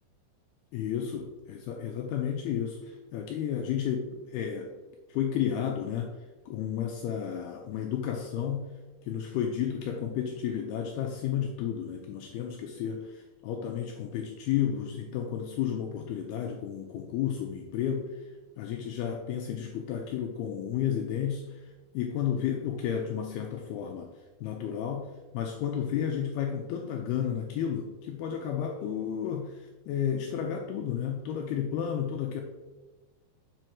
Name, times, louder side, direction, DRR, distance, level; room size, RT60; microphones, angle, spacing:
voice 1, 0.7-4.7 5.1-6.1 6.5-8.7 9.0-18.3 18.6-24.1 24.4-32.4, left 9 dB, 85° left, 2 dB, 2.3 m, -32 dB
7.6 x 6.3 x 4.6 m, 1.2 s
omnidirectional pair, 5.2 m